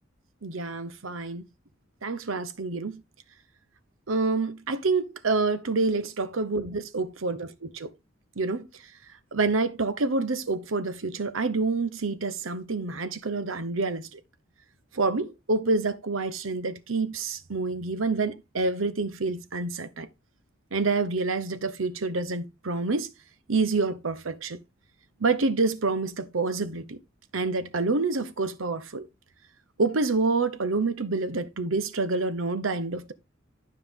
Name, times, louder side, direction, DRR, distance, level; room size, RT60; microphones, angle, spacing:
voice 1, 0.4-1.5 2.0-3.0 4.1-7.9 8.4-8.7 9.3-14.2 14.9-20.1 20.7-23.1 23.5-24.6 25.2-27.0 27.3-29.0 29.8-33.1, right 3 dB, 90° right, 0.9 m, -27 dB
12.0 x 5.3 x 3.6 m
head